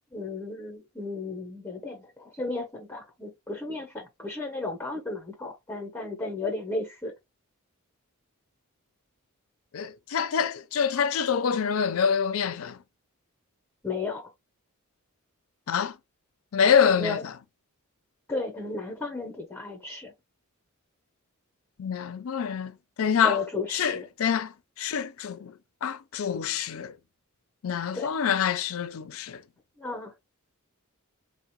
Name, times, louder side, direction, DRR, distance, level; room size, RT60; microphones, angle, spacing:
voice 1, 0.1-7.1 13.8-14.3 17.0-17.3 18.3-20.1 23.2-24.1 27.9-28.1 29.8-30.1, left 3 dB, 10° left, 0.6 m, -34 dB
voice 2, 9.7-12.8 15.7-16.0 16.5-17.3 21.8-23.4 23.7-25.5 25.8-26.9 27.6-29.4, left 7 dB, 65° left, 0.4 m, -26 dB
3.6 x 2.1 x 3.0 m
head